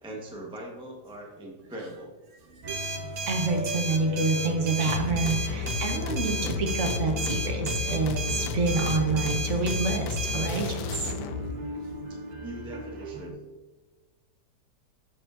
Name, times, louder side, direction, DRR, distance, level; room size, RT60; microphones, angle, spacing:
voice 1, 0.0-2.1 12.1-13.4, right 1 dB, 5° right, -2 dB, 0.7 m, -41 dB
voice 2, 2.5-2.9 3.2-11.1, right 3 dB, 50° right, 3 dB, 1.1 m, -28 dB
sound 1, 2.6-13.3, right 1 dB, 90° right, 0.4 m, -39 dB
sound 2, 2.7-10.5, right 2 dB, 70° right, 1.4 m, -34 dB
sound 3, 4.9-11.6, left 6 dB, 75° left, 1.1 m, -32 dB
12.0 x 4.8 x 2.5 m, 1.2 s
omnidirectional pair, 1.9 m